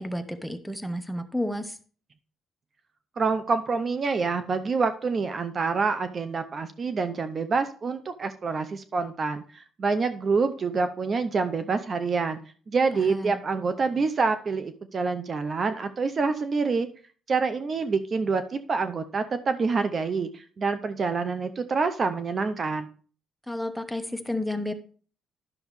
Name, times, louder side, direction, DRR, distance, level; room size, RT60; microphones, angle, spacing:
voice 1, 0.0-1.8 12.9-13.4 23.5-24.7, left 1 dB, ahead, 10 dB, 0.9 m, -31 dB
voice 2, 3.2-12.4 12.7-16.9 17.3-22.9, right 4 dB, 45° right, 10 dB, 0.6 m, -27 dB
11.0 x 6.3 x 3.1 m, 0.43 s
cardioid pair, 90°, 0 cm